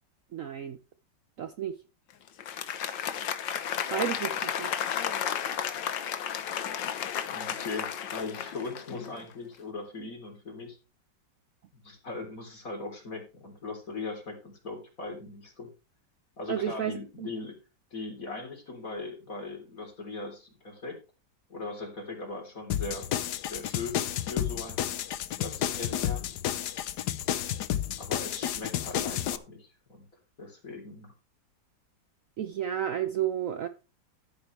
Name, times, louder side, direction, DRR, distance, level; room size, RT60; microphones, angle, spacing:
voice 1, 0.3-0.8 1.4-1.8 3.9-4.7 16.5-17.3 32.4-33.7, right 9 dB, 60° right, 0.9 m, -32 dB
Applause, 2.3-9.3, left 9 dB, 85° left, 1.7 m, -33 dB
voice 2, 7.3-10.8 11.7-15.7 16.4-17.5 17.9-21.0 21.5-24.0 24.3-24.8 25.4-26.3 28.0-30.1 30.4-31.1, left 3 dB, 50° left, 4.1 m, -39 dB
sound 1, 22.7-29.4, left 11 dB, 70° left, 1.3 m, -31 dB
13.5 x 9.5 x 3.3 m
omnidirectional pair, 1.9 m